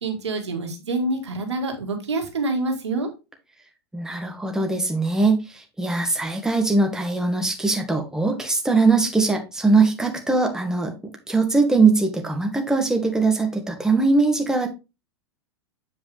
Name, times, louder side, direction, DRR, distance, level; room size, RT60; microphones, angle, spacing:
voice 1, 0.0-3.1, right 2 dB, 90° right, 4 dB, 1.9 m, -26 dB
voice 2, 3.9-10.9 11.3-14.7, right 3 dB, 5° right, 3 dB, 1.7 m, -21 dB
7.8 x 5.0 x 3.4 m, 0.28 s
hypercardioid pair, 105°, 14 cm